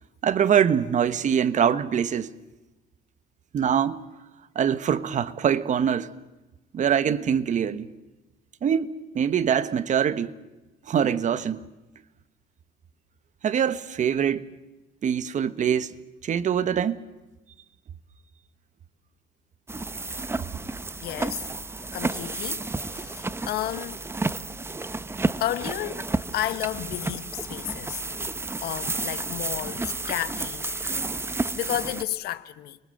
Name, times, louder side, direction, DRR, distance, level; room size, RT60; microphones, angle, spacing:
voice 1, 0.2-2.4 3.5-4.0 4.5-6.1 6.7-7.9 8.6-10.4 10.9-11.6 13.4-14.4 15.0-15.9 16.2-17.0, right 8 dB, 45° right, 1.3 m, -24 dB
sound 1, 19.7-32.0, right 3 dB, 15° right, 0.9 m, -31 dB
voice 2, 21.0-21.5 21.9-24.0 25.4-26.0 26.3-28.0 28.6-31.1 31.5-32.8, left 13 dB, 70° left, 1.2 m, -32 dB
29.5 x 23.5 x 7.9 m
cardioid pair, 110°, 17 cm